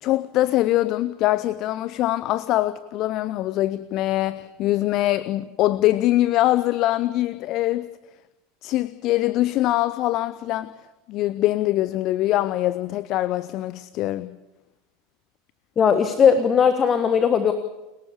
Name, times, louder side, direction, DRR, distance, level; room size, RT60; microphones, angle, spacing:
voice 1, 0.0-7.9 8.6-10.7 11.1-14.3, left 15 dB, 45° left, 0.7 m, -23 dB
voice 2, 15.8-17.5, left 7 dB, 25° left, 1.4 m, -18 dB
29.5 x 12.5 x 8.4 m
figure-of-eight pair, 80°, 0 cm